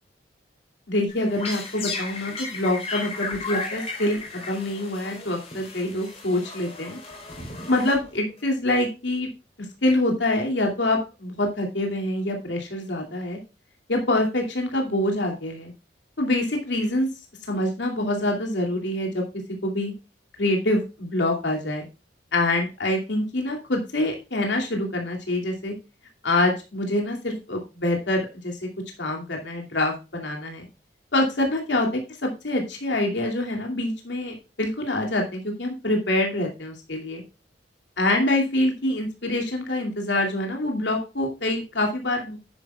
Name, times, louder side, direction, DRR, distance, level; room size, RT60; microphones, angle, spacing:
voice 1, 0.9-7.0 7.7-9.3 9.8-13.4 13.9-15.7 16.2-17.1 17.5-19.2 19.6-19.9 20.4-21.9 22.3-25.7 26.2-28.7 29.0-30.7 31.1-31.9 32.2-37.2 38.0-42.4, left 1 dB, 80° left, 1 dB, 2.6 m, -25 dB
sound 1, 1.1-8.4, left 3 dB, 35° left, 3.9 m, -35 dB
10.5 x 10.5 x 2.3 m, 0.29 s
head